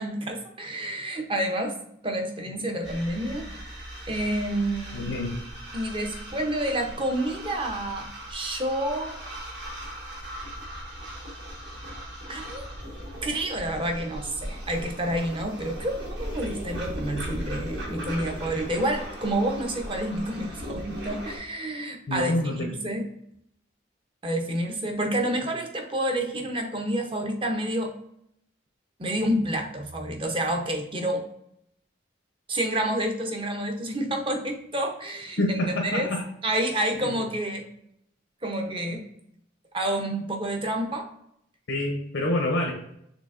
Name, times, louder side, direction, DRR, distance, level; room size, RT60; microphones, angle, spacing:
voice 1, 0.0-1.8 2.0-3.5 4.1-5.1 5.7-9.2 12.3-12.7 13.2-23.1 24.2-27.9 29.0-31.2 32.5-35.4 35.8-36.1 36.4-37.7 38.4-39.1 39.7-41.1, right 1 dB, 25° right, 4 dB, 0.7 m, -29 dB
sound 1, 2.8-21.4, equal, 60° right, 1.6 m, -38 dB
voice 2, 4.9-5.4 22.1-22.7 35.4-36.2 37.0-37.2 41.7-42.7, left 1 dB, 70° left, 1 dB, 0.7 m, -27 dB
6.4 x 3.3 x 2.5 m, 0.73 s
head